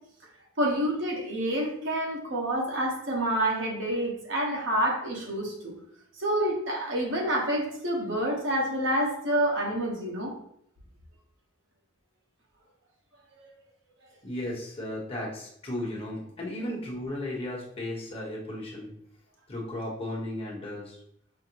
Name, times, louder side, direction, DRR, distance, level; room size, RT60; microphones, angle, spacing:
voice 1, 0.6-5.7 6.2-10.3, right 1 dB, 85° right, -2 dB, 1.1 m, -28 dB
voice 2, 14.2-18.9 19.5-21.0, left 1 dB, 30° left, -3 dB, 1.0 m, -35 dB
5.5 x 2.1 x 2.9 m, 0.69 s
head